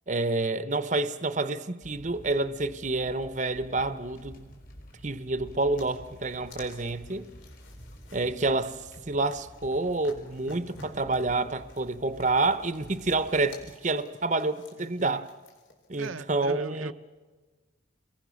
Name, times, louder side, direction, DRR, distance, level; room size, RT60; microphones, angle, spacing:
voice 1, 0.1-4.5 5.0-7.3 8.1-8.8 9.1-15.3 15.9-16.9, right 2 dB, 35° right, 0.8 m, -28 dB
sound 1, 1.8-13.7, equal, 45° left, 4.4 m, -50 dB
sound 2, 5.7-16.2, left 2 dB, 75° left, 4.7 m, -52 dB
voice 2, 16.0-16.9, right 4 dB, 85° right, 0.7 m, -40 dB
29.5 x 22.0 x 6.4 m
head